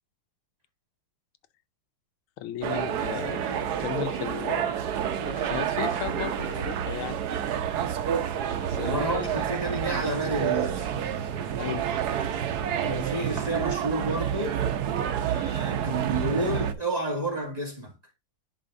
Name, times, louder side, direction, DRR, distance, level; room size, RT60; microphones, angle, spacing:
voice 1, 2.4-4.7 5.2-7.3 8.7-9.4 11.6-11.9, left 11 dB, 85° left, 1.5 m, -35 dB
sound 1, 2.6-16.7, right 9 dB, 60° right, 1.1 m, -29 dB
voice 2, 8.8-10.9 12.8-14.6 15.2-17.9, right 1 dB, 20° right, 1.9 m, -30 dB
10.5 x 3.5 x 3.7 m
omnidirectional pair, 2.3 m